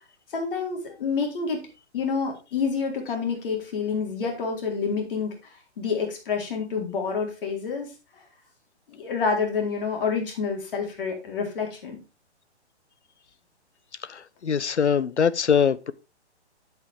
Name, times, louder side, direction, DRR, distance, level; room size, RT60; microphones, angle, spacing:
voice 1, 0.3-1.6 1.9-8.2 8.9-12.0, left 5 dB, 50° left, 4.1 m, -28 dB
voice 2, 14.0-15.9, left 7 dB, 80° left, 0.8 m, -23 dB
8.8 x 8.2 x 3.6 m
figure-of-eight pair, 125°, 34 cm